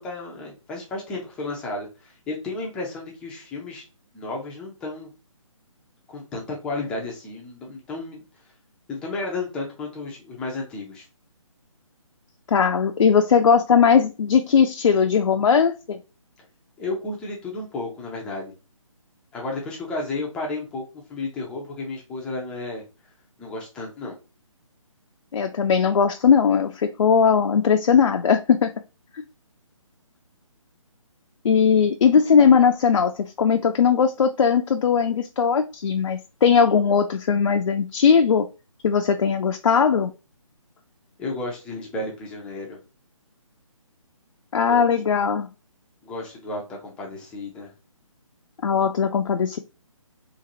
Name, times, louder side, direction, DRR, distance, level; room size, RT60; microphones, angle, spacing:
voice 1, 0.0-3.8 4.1-5.1 6.1-8.2 8.9-11.0 16.8-18.6 19.3-20.8 21.1-22.8 23.4-24.2 41.2-42.8 44.7-44.9 46.0-47.7, left 2 dB, 5° left, -2 dB, 0.4 m, -32 dB
voice 2, 12.5-16.0 25.3-28.7 31.4-38.5 38.8-40.1 44.5-45.5 48.6-49.6, left 6 dB, 65° left, 5 dB, 0.4 m, -19 dB
3.9 x 2.5 x 2.8 m, 0.30 s
figure-of-eight pair, 150°, 18 cm